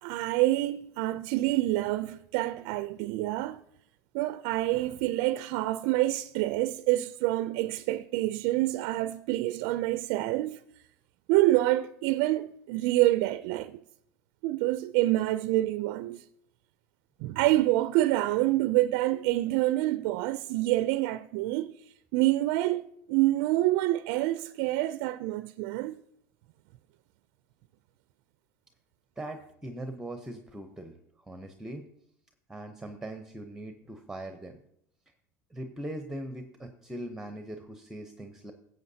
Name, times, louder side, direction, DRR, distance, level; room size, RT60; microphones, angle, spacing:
voice 1, 0.0-3.6 4.1-10.6 11.3-13.8 14.4-16.2 17.2-26.0, right 16 dB, 65° right, 0.4 m, -27 dB
voice 2, 29.2-31.0 31.3-31.8 32.5-34.6 35.5-38.5, right 1 dB, 5° right, 0.7 m, -40 dB
14.5 x 7.9 x 2.7 m
supercardioid pair, 110°, 9 cm